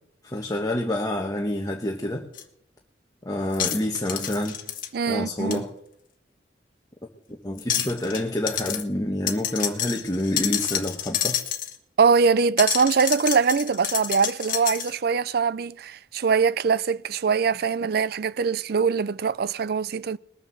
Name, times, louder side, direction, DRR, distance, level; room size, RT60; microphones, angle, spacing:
voice 1, 0.2-2.3 3.2-4.6 5.1-5.7 7.4-11.4, left 1 dB, 20° left, 1.2 m, -27 dB
sound 1, 2.4-2.5 3.5-4.9 5.5-5.6 7.6-8.2 8.5-8.8 9.3-11.8 12.6-14.9, left 10 dB, 50° left, 1.4 m, -28 dB
voice 2, 4.9-5.6 12.0-20.2, right 5 dB, 55° right, 0.4 m, -22 dB
20.0 x 6.9 x 7.1 m
head